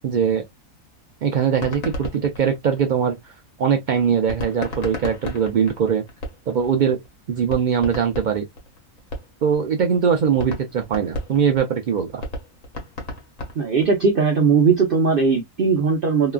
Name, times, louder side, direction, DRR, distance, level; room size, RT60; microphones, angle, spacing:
voice 1, 0.0-0.4 1.2-3.2 3.6-6.0 6.5-7.0 7.3-8.5 9.4-12.2, right 7 dB, 85° right, 0.4 m, -21 dB
sound 1, 1.6-3.3 4.3-6.7 7.1-7.2 7.5-9.6 9.9-10.0 10.4-14.0, left 1 dB, 75° left, 1.4 m, -33 dB
voice 2, 13.6-16.3, right 5 dB, 50° right, 0.7 m, -18 dB
2.9 x 2.3 x 2.3 m
omnidirectional pair, 1.4 m